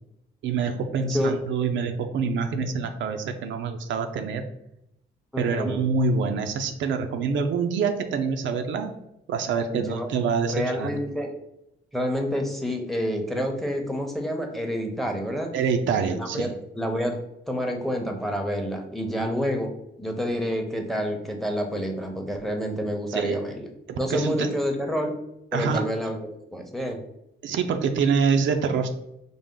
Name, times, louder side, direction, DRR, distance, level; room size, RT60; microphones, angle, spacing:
voice 1, 0.4-4.4 5.4-8.9 9.3-10.9 15.5-16.5 23.1-23.4 23.9-24.5 25.5-25.9 27.4-28.9, right 5 dB, 70° right, 6 dB, 0.5 m, -26 dB
voice 2, 5.3-5.8 9.7-10.1 10.5-11.3 11.9-15.5 16.1-16.5 16.7-17.2 17.5-19.7 20.0-23.6 24.0-25.1 25.5-27.0, equal, ahead, 4 dB, 0.7 m, -28 dB
5.0 x 2.0 x 3.7 m, 0.82 s
cardioid pair, 90°, 20 cm